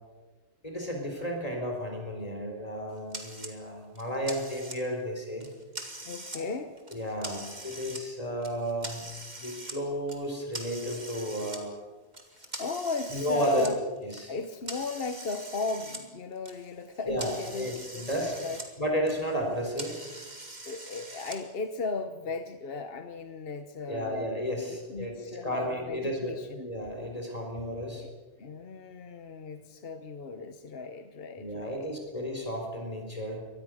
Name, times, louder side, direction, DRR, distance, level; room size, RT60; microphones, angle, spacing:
voice 1, 0.6-5.5 6.3-6.5 6.9-9.1 9.4-11.7 13.1-13.7 14.1-14.3 17.1-18.4 18.8-20.0 23.9-28.0 31.4-33.5, equal, 30° left, 2 dB, 4.4 m, -33 dB
sound 1, 3.1-3.5 4.0-5.0 5.4-6.4 6.8-8.0 8.4-9.8 10.1-11.6 12.1-16.0 16.3-18.7 19.0-21.4, right 2 dB, 40° right, 2.9 m, -42 dB
voice 2, 6.0-6.7 12.3-13.8 14.3-18.6 20.7-24.3 24.7-26.7 28.0-32.0, left 4 dB, 60° left, 8 dB, 1.2 m, -36 dB
24.0 x 19.5 x 6.4 m, 1.3 s
omnidirectional pair, 1.2 m